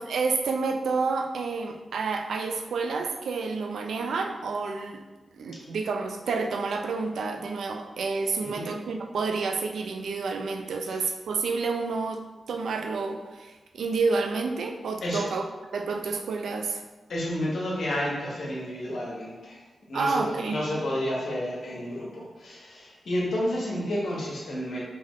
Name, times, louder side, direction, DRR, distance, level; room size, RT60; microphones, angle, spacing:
voice 1, 0.0-5.0 5.3-12.2 12.5-15.4 15.7-16.8 19.9-20.6, right 4 dB, 90° right, 4 dB, 0.4 m, -29 dB
voice 2, 17.1-19.6 19.9-24.8, left 1 dB, 75° left, -4 dB, 1.2 m, -31 dB
3.7 x 3.0 x 3.7 m, 1.2 s
cardioid pair, 70°, 0 cm